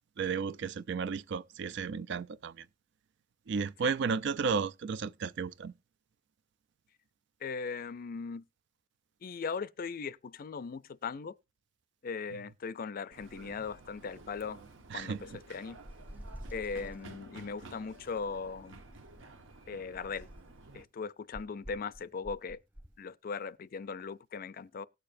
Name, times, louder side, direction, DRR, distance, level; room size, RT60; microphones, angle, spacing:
voice 1, 0.2-2.6 3.5-5.7 14.9-15.2, right 5 dB, 65° right, 0.4 m, -33 dB
voice 2, 7.4-8.4 9.2-11.3 12.0-14.6 14.9-15.8 16.5-18.8 19.7-20.3 20.7-22.6 23.0-24.9, left 5 dB, 50° left, 0.4 m, -39 dB
sound 1, 13.1-20.9, right 3 dB, 85° right, 1.1 m, -52 dB
sound 2, 15.9-17.1 18.0-19.3 19.9-20.6 21.3-23.0, equal, 10° right, 0.5 m, -49 dB
18.5 x 6.7 x 2.6 m
head